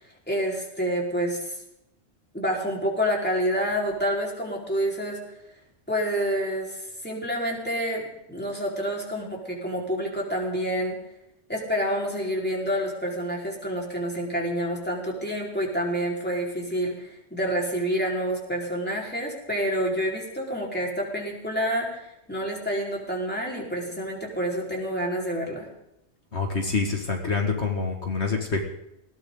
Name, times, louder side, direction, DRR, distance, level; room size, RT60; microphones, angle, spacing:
voice 1, 0.3-1.5 2.3-5.2 5.9-11.0 11.5-25.7, equal, 10° left, -2 dB, 4.7 m, -28 dB
voice 2, 26.3-28.6, left 4 dB, 70° left, 2 dB, 2.5 m, -26 dB
20.0 x 18.0 x 4.0 m, 0.83 s
omnidirectional pair, 1.2 m